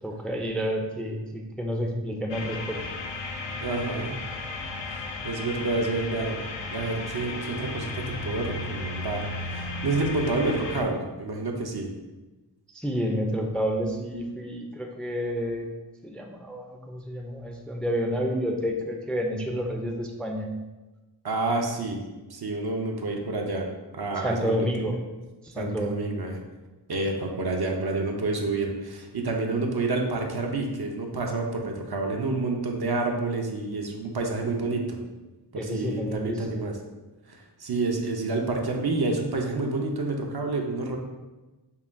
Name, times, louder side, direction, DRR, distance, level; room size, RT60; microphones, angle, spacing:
voice 1, 0.0-2.8 12.7-15.7 16.0-20.5 24.2-24.9 25.4-26.0 35.5-36.4, equal, ahead, 2 dB, 0.4 m, -29 dB
sound 1, 2.3-10.8, left 3 dB, 85° left, 0.5 m, -34 dB
voice 2, 3.6-4.1 4.9-6.4 6.7-11.9 21.2-22.0 22.3-23.7 23.9-24.7 25.6-26.4 26.9-35.0 35.5-36.7 37.3-41.0, right 3 dB, 60° right, 1 dB, 0.6 m, -29 dB
5.6 x 2.2 x 2.5 m, 1.1 s
wide cardioid pair, 40°, 44 cm